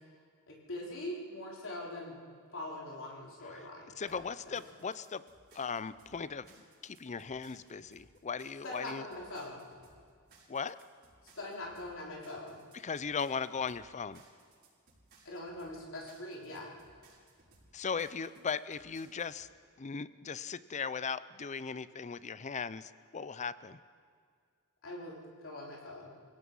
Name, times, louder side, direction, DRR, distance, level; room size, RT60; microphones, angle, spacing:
voice 1, 0.5-2.2 2.5-4.2 4.5-4.6 8.6-9.6 11.3-12.6 15.2-16.7 24.8-25.2 25.4-26.1, left 1 dB, 60° left, -3 dB, 4.2 m, -42 dB
voice 2, 4.0-5.2 5.5-6.5 6.8-9.1 10.5-10.8 12.7-14.2 17.7-19.5 19.8-23.8, left 5 dB, 30° left, 16 dB, 0.5 m, -38 dB
sound 1, 4.1-19.4, right 3 dB, 50° right, 6.7 m, -63 dB
27.5 x 17.0 x 5.5 m, 2.1 s
head